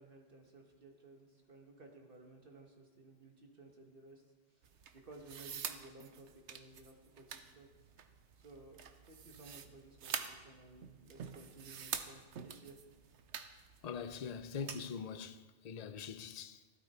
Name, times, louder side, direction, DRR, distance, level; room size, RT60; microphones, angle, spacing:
voice 1, 0.0-4.2 4.5-4.7 4.9-7.9 8.4-12.8, right 2 dB, 50° right, 1.8 m, -57 dB
sound 1, 4.6-14.9, right 7 dB, 75° right, 1.1 m, -47 dB
voice 2, 13.8-15.4 15.6-16.6, left 6 dB, 40° left, 0.6 m, -42 dB
15.0 x 13.0 x 4.4 m
omnidirectional pair, 1.2 m